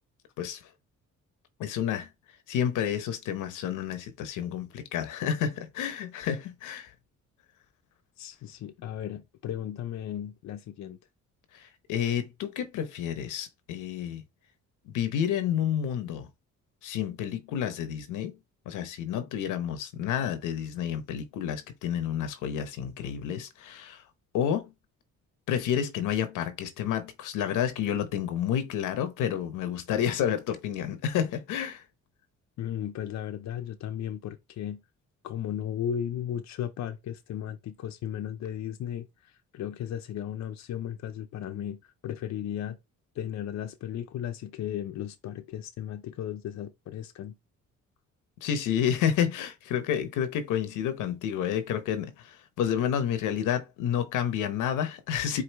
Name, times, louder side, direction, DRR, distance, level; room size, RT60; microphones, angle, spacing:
voice 1, 1.6-2.1 2.5-6.9 11.6-14.2 14.9-16.3 16.8-18.3 18.7-24.0 24.3-24.7 25.5-31.8 48.4-55.4, left 9 dB, 90° left, 0.9 m, -30 dB
voice 2, 8.2-11.0 32.6-34.8 35.2-42.8 43.1-47.4, left 10 dB, 65° left, 0.7 m, -35 dB
4.7 x 2.8 x 4.1 m
cardioid pair, 90°, 30 cm